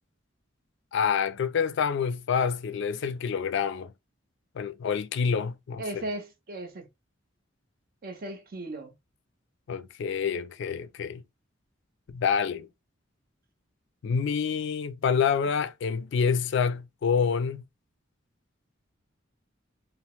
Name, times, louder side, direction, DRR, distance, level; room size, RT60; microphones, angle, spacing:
voice 1, 0.9-3.9 4.6-6.0 9.7-11.2 12.1-12.7 14.0-17.6, left 6 dB, 65° left, 0.4 m, -27 dB
voice 2, 5.8-6.9 8.0-8.9, right 1 dB, 50° right, 0.7 m, -37 dB
2.9 x 2.0 x 3.0 m
head